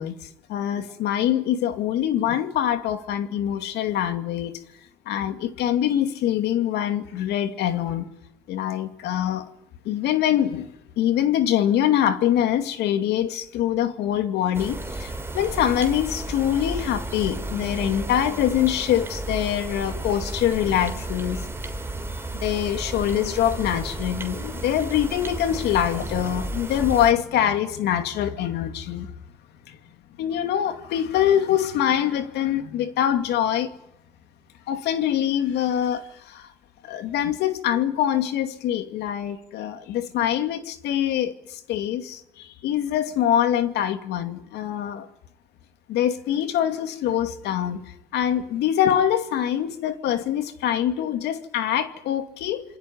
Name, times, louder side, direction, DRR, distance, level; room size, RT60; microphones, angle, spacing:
voice 1, 0.0-4.6 5.1-8.1 8.5-9.5 9.8-10.7 11.0-21.5 22.3-29.1 29.7-29.8 30.2-33.7 34.7-36.5 36.8-45.1 45.9-52.6, left 10 dB, 80° left, 2.5 m, -24 dB
sound 1, 14.5-27.1, right 2 dB, 15° right, 3.2 m, -33 dB
27.5 x 21.0 x 9.6 m
cardioid pair, 110°, 17 cm